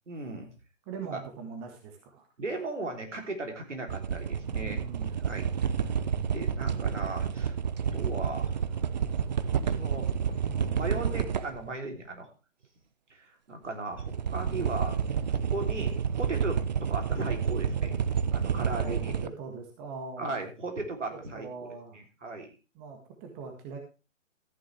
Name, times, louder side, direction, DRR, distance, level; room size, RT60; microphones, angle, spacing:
voice 1, 0.1-0.5 1.1-1.2 2.4-4.8 5.2-5.5 6.2-7.6 7.9-8.5 9.6-10.1 10.7-12.3 13.1-15.0 15.3-18.0 18.3-19.1 20.2-22.5, right 2 dB, 65° right, 3 dB, 3.4 m, -37 dB
voice 2, 0.8-2.3 4.6-5.1 10.5-10.8 18.5-20.3 21.1-22.0 22.7-23.8, right 5 dB, 20° right, 3 dB, 1.6 m, -42 dB
sound 1, 3.9-11.7 14.0-19.3, right 7 dB, 35° right, 0.6 m, -29 dB
14.0 x 9.5 x 3.3 m, 0.32 s
figure-of-eight pair, 135°, 38 cm